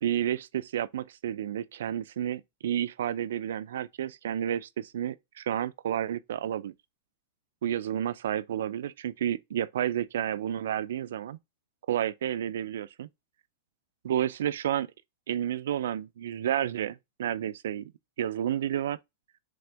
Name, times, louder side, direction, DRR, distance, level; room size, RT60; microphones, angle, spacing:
voice 1, 0.0-6.7 7.6-11.4 11.9-13.1 14.0-14.9 15.3-17.9 18.2-19.0, right 10 dB, 75° right, 0.3 m, -31 dB
3.6 x 3.4 x 3.3 m
supercardioid pair, 170°, 0 cm